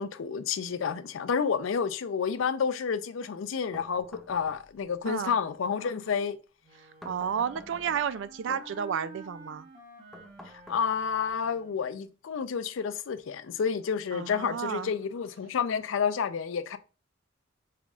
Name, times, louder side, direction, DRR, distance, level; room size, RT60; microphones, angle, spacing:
voice 1, 0.0-6.4 8.5-8.6 10.7-16.8, left 6 dB, 70° left, 0.4 m, -30 dB
sound 1, 3.7-5.0 7.0-8.3 10.1-11.3, left 1 dB, ahead, 0.5 m, -50 dB
voice 2, 5.1-5.4 7.0-9.7 14.1-14.9, right 7 dB, 65° right, 0.3 m, -32 dB
Wind instrument woodwind instrument, 6.6-12.0, right 2 dB, 45° right, 2.1 m, -50 dB
5.6 x 3.5 x 2.4 m
head